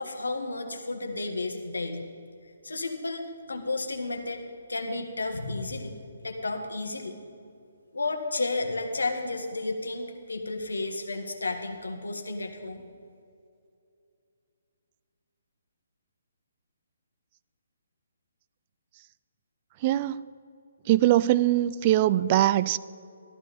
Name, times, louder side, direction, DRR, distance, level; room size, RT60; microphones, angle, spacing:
voice 1, 0.0-2.0 2.6-7.2 7.9-12.8, left 2 dB, 85° left, 5 dB, 1.6 m, -32 dB
voice 2, 19.8-20.2 20.9-22.8, right 14 dB, 35° right, 18 dB, 0.3 m, -22 dB
13.5 x 13.0 x 4.2 m, 2.5 s
figure-of-eight pair, 145°, 0 cm